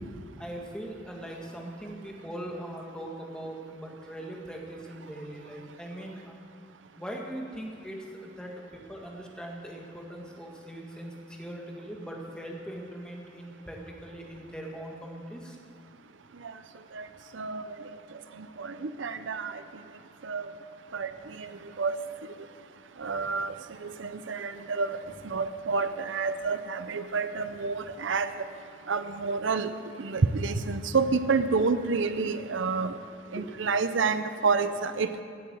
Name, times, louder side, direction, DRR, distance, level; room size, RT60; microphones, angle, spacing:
voice 1, 0.4-6.4 7.0-15.6 23.0-23.2 32.8-32.9 33.3-33.5, right 1 dB, 5° left, -1 dB, 1.8 m, -40 dB
voice 2, 18.6-19.6 20.2-20.5 20.9-21.1 21.4-21.5 21.8-22.0 23.0-23.5 23.8-25.0 25.2-28.3 28.9-29.7 30.0-32.9 33.3-35.1, right 4 dB, 75° right, 11 dB, 0.6 m, -28 dB
17.5 x 8.6 x 7.9 m, 2.5 s
head